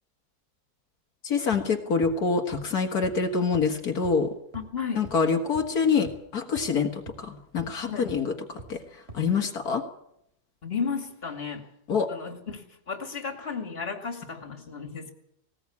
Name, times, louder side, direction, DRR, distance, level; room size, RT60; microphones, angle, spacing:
voice 1, 1.2-4.3 5.0-9.8 11.9-12.1, left 5 dB, 75° left, 4 dB, 2.2 m, -26 dB
sound 1, 1.5-1.6 2.0-2.1 2.5-2.6 3.0-3.1 3.5-3.6 4.0-4.1 4.5-4.6 5.0-5.1 5.5-5.6 6.1-6.2 6.6-6.7 7.1-7.2 7.6-7.7 8.1-8.2 8.6-8.7 9.1-9.2, right 2 dB, 40° right, 4.4 m, -42 dB
voice 2, 4.5-5.1 7.8-8.1 10.6-11.7 12.1-15.1, left 5 dB, 40° left, 6 dB, 2.7 m, -34 dB
19.0 x 18.5 x 8.6 m, 0.75 s
omnidirectional pair, 1.6 m